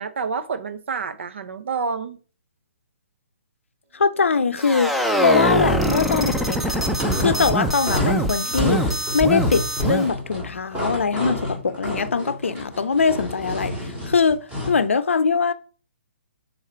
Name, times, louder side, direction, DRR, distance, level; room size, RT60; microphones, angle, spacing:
voice 1, 0.0-2.2, right 5 dB, 65° right, 0.7 m, -28 dB
voice 2, 3.9-4.9 5.2-6.8 7.2-8.8 9.1-13.8 14.1-14.4 14.7-15.5, left 5 dB, 75° left, 0.5 m, -21 dB
sound 1, 4.0-7.8, right 1 dB, 80° right, 1.2 m, -40 dB
sound 2, 4.6-10.1, equal, ahead, 0.6 m, -23 dB
sound 3, 6.7-14.8, left 1 dB, 15° right, 2.4 m, -29 dB
6.4 x 4.1 x 4.4 m
figure-of-eight pair, 130°, 7 cm